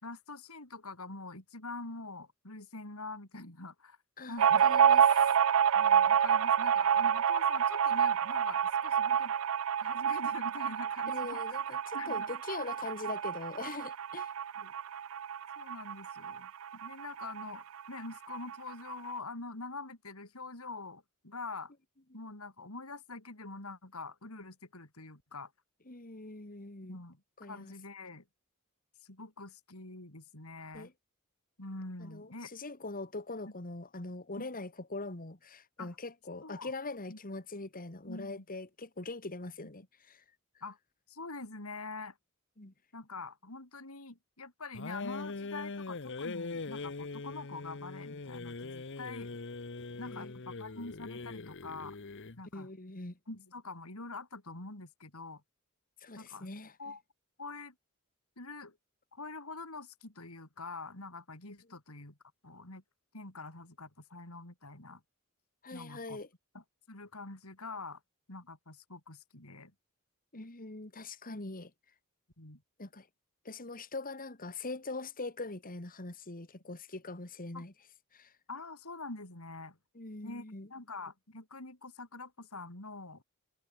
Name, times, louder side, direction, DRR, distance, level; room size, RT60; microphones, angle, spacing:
voice 1, 0.0-4.0 4.3-4.7 5.7-9.3 9.8-12.3 13.1-13.2 14.6-14.7 15.6-21.7 22.1-25.5 26.8-28.2 29.0-30.9 31.6-32.5 34.4-34.5 35.8-36.0 36.4-36.7 37.1-37.2 38.0-38.4 40.6-40.8 41.1-42.2 42.9-49.3 50.0-52.0 52.4-52.7 53.3-55.4 56.2-56.5 56.8-57.0 57.4-57.7 58.4-58.8 59.1-62.2 62.4-62.8 63.1-65.0 65.7-66.2 66.5-68.0 68.3-69.7 72.4-72.6 77.5-77.7 78.5-79.8 80.2-80.4 80.7-83.2, left 3 dB, 80° left, 4.7 m, -45 dB
voice 2, 4.2-5.3 11.1-14.3 25.9-27.0 27.4-27.7 30.7-30.9 32.0-40.2 42.6-42.7 50.1-50.3 52.5-53.2 56.0-56.7 65.6-66.3 70.3-71.7 72.8-73.1 73.4-77.7 78.1-78.3 79.9-80.7, left 3 dB, 40° left, 2.4 m, -42 dB
sound 1, 4.4-17.5 17.8-17.9 18.2-18.9, right 8 dB, 70° right, 0.5 m, -28 dB
sound 2, 44.7-52.4, left 3 dB, 60° left, 1.1 m, -41 dB
head